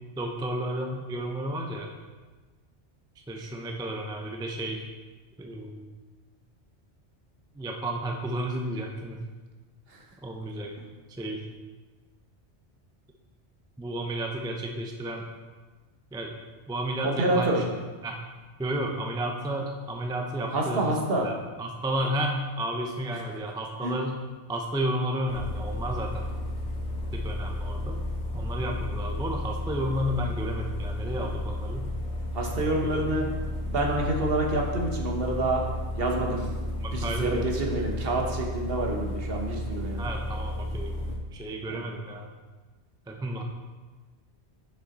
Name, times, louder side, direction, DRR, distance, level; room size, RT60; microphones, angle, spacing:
voice 1, 0.2-1.9 3.3-4.8 5.4-5.9 7.5-9.2 10.2-10.7 11.2-11.5 13.8-15.2 16.1-16.4 16.7-17.6 18.0-18.2 18.6-21.3 21.6-24.1 24.5-26.2 27.1-28.0 28.3-31.9 32.7-33.3 36.8-37.5 40.0-41.1 41.3-42.3 43.1-43.4, right 1 dB, 5° right, 1 dB, 0.4 m, -32 dB
voice 2, 17.0-17.6 20.5-21.3 23.1-23.2 23.8-23.9 32.3-33.3 33.6-35.6 36.0-36.5 36.9-40.0 41.7-41.8, right 2 dB, 60° right, 1 dB, 1.2 m, -27 dB
sound 1, 25.3-41.2, left 1 dB, 80° left, 1.4 m, -33 dB
6.3 x 5.7 x 4.1 m, 1.3 s
omnidirectional pair, 1.2 m